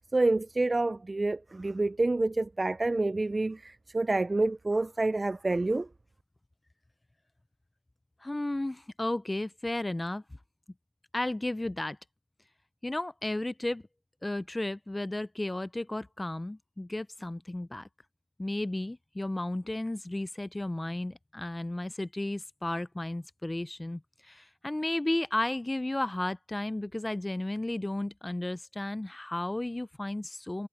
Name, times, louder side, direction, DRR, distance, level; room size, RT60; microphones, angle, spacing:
voice 1, 0.1-5.9, right 2 dB, 45° right, 0.3 m, -28 dB
voice 2, 8.2-10.2 11.1-12.0 12.8-13.8 14.2-17.9 18.4-30.7, left 1 dB, 30° left, 0.5 m, -33 dB
wide cardioid pair, 55°, 0 cm